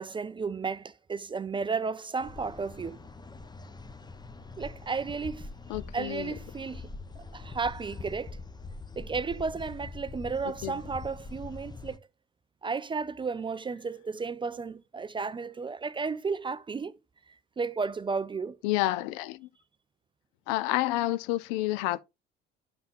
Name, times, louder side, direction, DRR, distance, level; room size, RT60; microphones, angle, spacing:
voice 1, 0.0-3.0 4.6-5.5 5.9-6.9 7.2-8.4 9.0-12.0 12.6-17.0 17.3-18.6, right 4 dB, 15° right, 0.4 m, -33 dB
sound 1, 2.2-12.0, left 3 dB, 15° left, 0.8 m, -44 dB
voice 2, 5.7-6.3 10.6-10.7 18.6-19.5 20.5-22.0, left 16 dB, 60° left, 0.5 m, -29 dB
12.0 x 5.6 x 2.5 m
figure-of-eight pair, 60°, 30 cm